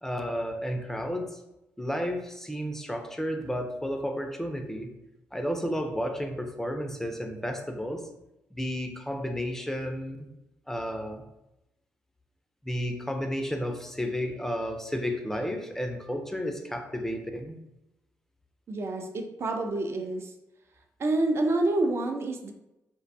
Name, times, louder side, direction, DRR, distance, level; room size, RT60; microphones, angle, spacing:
voice 1, 0.0-1.4 1.8-4.9 5.3-8.0 8.5-10.2 10.7-11.2 12.6-17.6, equal, 5° left, 4 dB, 0.4 m, -32 dB
voice 2, 18.7-20.3 21.0-22.5, right 2 dB, 50° right, 5 dB, 0.4 m, -28 dB
2.5 x 2.2 x 2.6 m, 0.89 s
cardioid pair, 65°, 6 cm